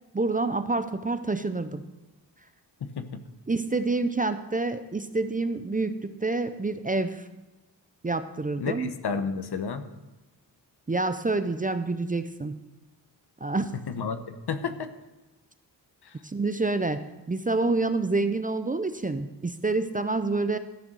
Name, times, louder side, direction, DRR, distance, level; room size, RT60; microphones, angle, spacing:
voice 1, 0.1-1.8 3.5-7.3 8.0-8.9 10.9-12.5 13.4-13.7 16.2-20.6, right 3 dB, 20° right, 10 dB, 0.5 m, -27 dB
voice 2, 2.8-3.2 8.6-9.8 13.9-14.9 16.0-16.2, left 5 dB, 60° left, 10 dB, 1.0 m, -31 dB
14.0 x 6.5 x 6.2 m, 1.1 s
cardioid pair, 90°, 44 cm